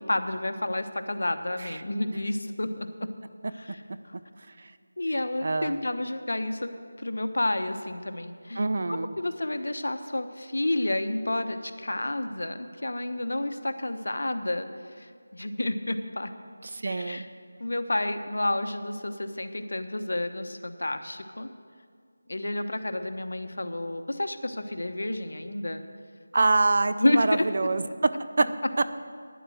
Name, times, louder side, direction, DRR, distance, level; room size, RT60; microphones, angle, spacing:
voice 1, 0.0-3.1 3.6-3.8 4.1-4.2 5.0-16.3 16.8-17.3 17.6-21.5 22.3-25.8 26.9-27.4, left 1 dB, 75° left, 8 dB, 0.9 m, -30 dB
voice 2, 5.4-5.8 8.6-9.1 16.6-17.3 26.3-28.5 28.8-28.9, right 3 dB, 50° right, 12 dB, 0.5 m, -25 dB
10.0 x 7.9 x 7.9 m, 2.1 s
figure-of-eight pair, 170°, 0 cm